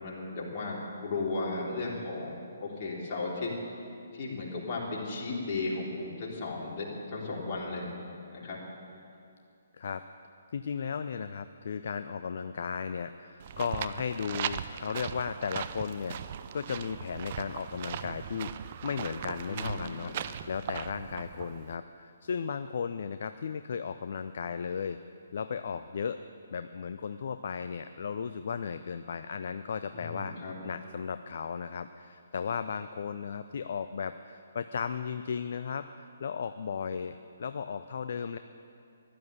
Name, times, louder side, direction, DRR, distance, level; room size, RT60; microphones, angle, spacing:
voice 1, 0.0-3.5 4.1-8.0 8.3-8.6 19.5-20.1 29.9-30.5, left 3 dB, 35° left, -4 dB, 3.7 m, -35 dB
voice 2, 10.5-18.5 18.8-25.0 25.3-26.2 26.5-30.4 30.6-38.4, left 6 dB, 50° left, 10 dB, 0.5 m, -35 dB
sound 1, 13.4-21.7, right 9 dB, 40° right, 0.5 m, -39 dB
15.5 x 12.0 x 7.0 m, 2.5 s
figure-of-eight pair, 135°, 0 cm